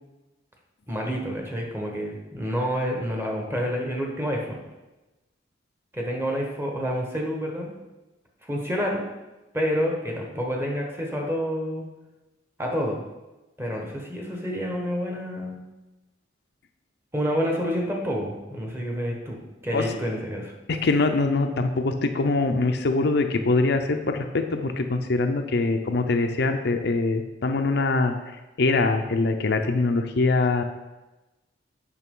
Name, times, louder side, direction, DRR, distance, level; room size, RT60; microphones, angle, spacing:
voice 1, 0.9-4.6 5.9-7.7 8.4-9.0 9.5-11.8 12.6-13.0 13.6-15.6 17.1-19.4 19.6-20.5, equal, 10° right, 0 dB, 1.2 m, -28 dB
voice 2, 20.7-28.1 28.6-30.6, left 3 dB, 60° left, 6 dB, 0.6 m, -23 dB
8.2 x 5.9 x 3.7 m, 1.1 s
head